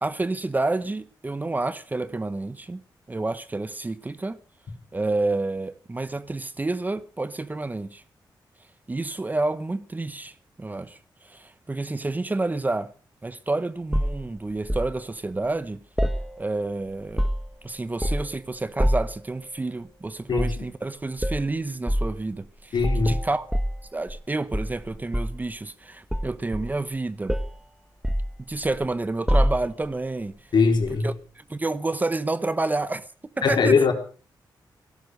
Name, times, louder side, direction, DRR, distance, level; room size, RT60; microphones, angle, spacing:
voice 1, 0.0-2.8 3.1-4.4 4.9-8.0 8.9-11.0 11.2-12.9 13.2-15.8 16.4-17.3 17.6-23.5 23.9-27.3 28.5-30.4 31.0-33.0 33.4-33.8, right 2 dB, 20° right, 0.9 m, -29 dB
sound 1, 13.9-14.9 16.0-16.7 17.0-17.6 18.0-18.4 18.8-19.2 20.3-20.6 21.2-21.4 21.9-22.1 22.8-24.2 24.5-25.5 26.1-27.0 27.3-27.6 28.0-28.9 29.3-29.9 30.8-31.0, equal, 5° right, 1.4 m, -26 dB
voice 2, 20.3-20.7 22.7-23.2 30.5-31.1 33.4-33.9, left 5 dB, 65° left, 4.1 m, -21 dB
17.0 x 12.0 x 6.4 m
wide cardioid pair, 110°, 8 cm